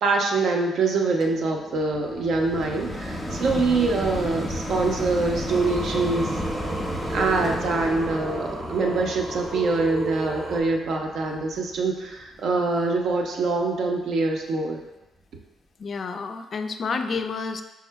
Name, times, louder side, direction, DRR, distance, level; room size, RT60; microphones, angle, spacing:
voice 1, 0.0-6.3 7.1-14.8, right 3 dB, 65° right, 2 dB, 0.6 m, -24 dB
sound 1, 1.2-12.5 13.1-13.2, equal, 15° left, 0.6 m, -33 dB
voice 2, 3.5-3.9 15.8-17.6, left 4 dB, 50° left, 7 dB, 0.3 m, -30 dB
Singing, 5.5-10.6, right 2 dB, 30° right, 0.7 m, -33 dB
4.6 x 2.1 x 4.5 m, 1.0 s
cardioid pair, 90°, 0 cm